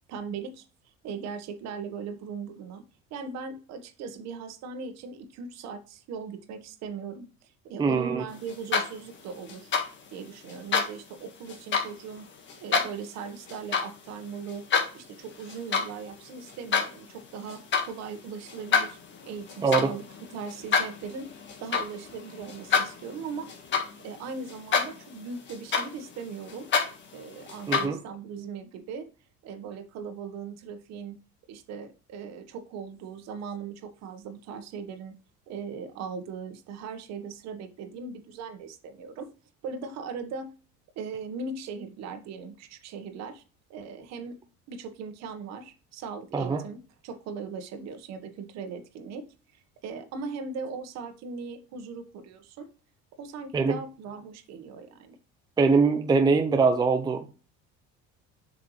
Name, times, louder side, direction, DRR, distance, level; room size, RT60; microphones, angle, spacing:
voice 1, 0.1-0.6 1.0-2.8 3.1-9.7 10.1-12.2 12.6-14.6 14.9-17.6 17.9-21.3 21.6-23.5 24.0-26.7 27.1-29.1 29.4-31.2 31.5-35.1 35.5-39.3 39.6-40.5 40.9-43.4 43.7-44.4 44.7-49.2 49.8-52.7 53.2-55.1, right 5 dB, 60° right, 1.4 m, -39 dB
voice 2, 7.8-8.2 19.6-19.9 27.7-28.0 46.3-46.6 53.5-53.7 55.6-57.3, right 4 dB, 15° right, 0.6 m, -22 dB
sound 1, 8.5-9.1 9.5-9.9 10.5-10.9 11.5-11.9 12.5-12.9 13.5-13.9 14.3-14.9 15.4-15.9 16.2-16.9 17.5-17.9 18.4-24.2 24.5-25.1 25.5-27.8, left 6 dB, 35° left, 1.7 m, -28 dB
7.8 x 5.7 x 3.2 m
cardioid pair, 150°, 31 cm